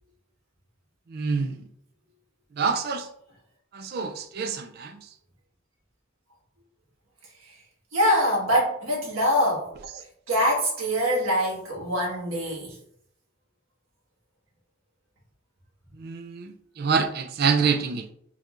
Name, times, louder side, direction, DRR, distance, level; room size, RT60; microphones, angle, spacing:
voice 1, 1.1-1.6 2.6-3.1 3.7-5.0 16.0-18.1, right 5 dB, 45° right, 6 dB, 0.3 m, -26 dB
voice 2, 7.9-9.7 10.3-12.8, equal, 75° right, -3 dB, 1.5 m, -24 dB
4.4 x 3.6 x 2.4 m, 0.70 s
head